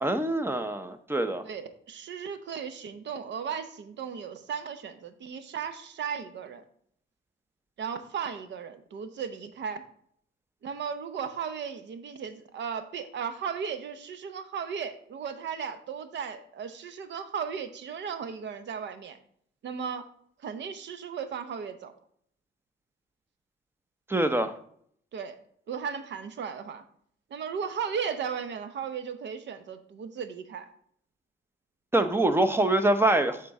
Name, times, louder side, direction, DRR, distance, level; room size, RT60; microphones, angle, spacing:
voice 1, 0.0-1.4 24.1-24.5 31.9-33.4, right 1 dB, 10° right, 9 dB, 0.6 m, -24 dB
voice 2, 1.4-6.6 7.8-9.8 10.6-19.2 19.6-20.0 20.4-21.9 25.1-25.4 25.7-26.8 27.3-30.7, right 7 dB, 65° right, 10 dB, 0.8 m, -36 dB
6.8 x 3.8 x 4.6 m, 0.65 s
cardioid pair, 90°, 20 cm